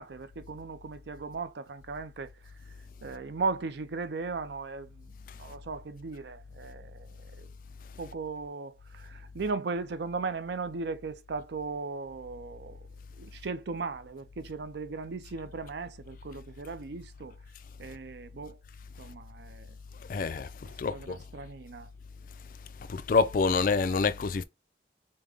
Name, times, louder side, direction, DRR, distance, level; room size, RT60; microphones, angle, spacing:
voice 1, 0.0-2.3 3.0-5.1 5.4-7.5 8.0-12.9 13.2-17.4 17.8-18.6 19.0-19.8 20.7-21.9, right 4 dB, 65° right, 0.4 m, -37 dB
voice 2, 20.1-20.5 20.8-21.2 22.9-24.4, left 4 dB, 50° left, 0.3 m, -26 dB
5.0 x 2.1 x 3.4 m
head